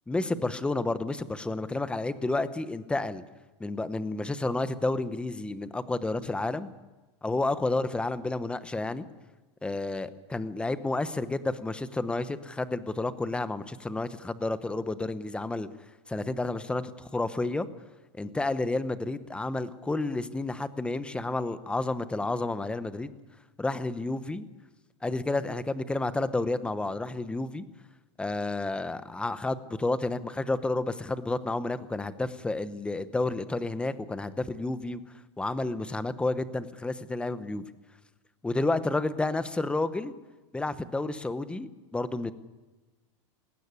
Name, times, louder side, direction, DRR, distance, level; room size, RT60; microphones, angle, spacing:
voice 1, 0.1-3.2 3.6-6.7 7.2-9.1 9.6-15.7 16.1-17.7 18.1-23.1 23.6-24.5 25.0-27.6 28.2-35.0 35.4-37.6 38.4-40.1 40.5-42.3, left 2 dB, 5° left, 13 dB, 0.9 m, -30 dB
19.0 x 17.0 x 9.7 m, 1.2 s
supercardioid pair, 140°, 15 cm